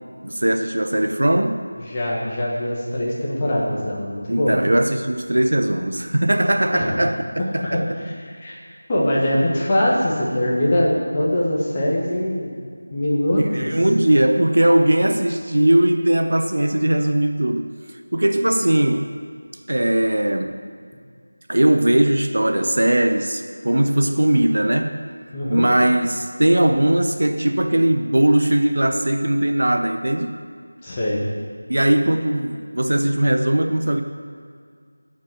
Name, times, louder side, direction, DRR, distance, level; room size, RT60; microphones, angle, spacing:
voice 1, 0.2-1.7 4.3-7.2 7.5-7.8 13.5-17.7 18.1-19.1 19.7-20.6 21.5-25.0 25.5-30.4 31.7-34.0, right 1 dB, 55° right, 7 dB, 0.6 m, -19 dB
voice 2, 1.8-4.6 6.7-7.0 7.6-7.8 8.2-8.6 8.9-12.5 12.9-13.7 25.3-25.6 30.8-31.2, left 1 dB, 20° left, -5 dB, 1.4 m, -22 dB
9.0 x 5.4 x 7.6 m, 2.2 s
figure-of-eight pair, 170°, 0 cm